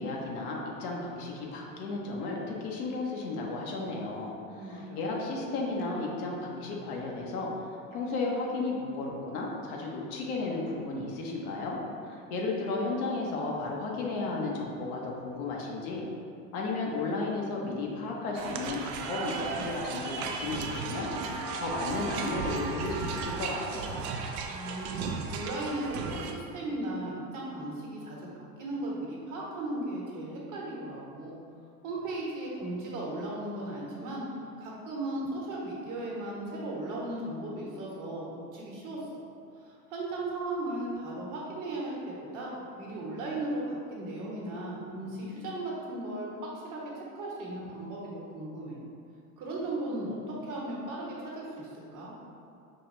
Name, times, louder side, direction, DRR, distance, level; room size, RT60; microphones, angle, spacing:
voice 1, 0.0-7.5 7.9-11.8 12.1-16.1 16.5-24.1, left 3 dB, 70° left, -2 dB, 0.9 m, -34 dB
voice 2, 4.5-5.0 24.5-31.4 31.8-34.2 34.6-39.0 39.6-46.3 46.6-48.8 49.4-52.1, right 1 dB, 45° right, -4 dB, 1.2 m, -36 dB
sound 1, 18.4-26.3, right 5 dB, 65° right, 0.5 m, -35 dB
4.9 x 2.3 x 3.0 m, 2.5 s
hypercardioid pair, 85°, 45 cm